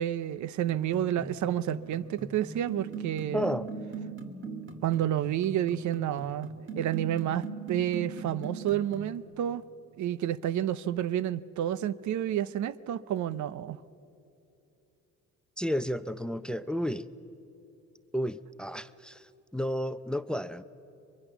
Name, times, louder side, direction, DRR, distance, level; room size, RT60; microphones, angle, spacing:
voice 1, 0.0-3.5 4.8-6.5 6.8-9.6 10.0-13.8, right 11 dB, 70° right, 17 dB, 0.7 m, -30 dB
sound 1, 0.7-9.2, right 4 dB, 40° right, 1.8 m, -40 dB
voice 2, 3.3-3.7 15.6-17.1 18.1-20.6, equal, 5° left, 15 dB, 0.6 m, -32 dB
23.0 x 22.5 x 7.1 m, 2.9 s
cardioid pair, 90°, 30 cm